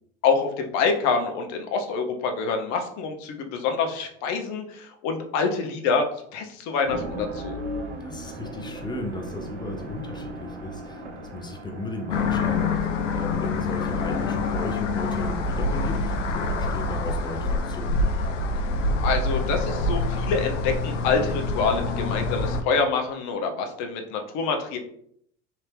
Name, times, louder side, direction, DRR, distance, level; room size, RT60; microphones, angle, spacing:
voice 1, 0.2-6.0 6.3-7.6 19.0-24.8, left 5 dB, 50° left, 4 dB, 0.8 m, -26 dB
sound 1, 6.8-12.4, right 1 dB, 75° right, 0.9 m, -36 dB
voice 2, 8.0-12.9 13.1-18.0, left 2 dB, 10° left, 2 dB, 0.7 m, -35 dB
sound 2, 12.1-22.6, left 3 dB, 80° left, 0.6 m, -26 dB
3.4 x 2.8 x 3.3 m, 0.68 s
hypercardioid pair, 80°, 36 cm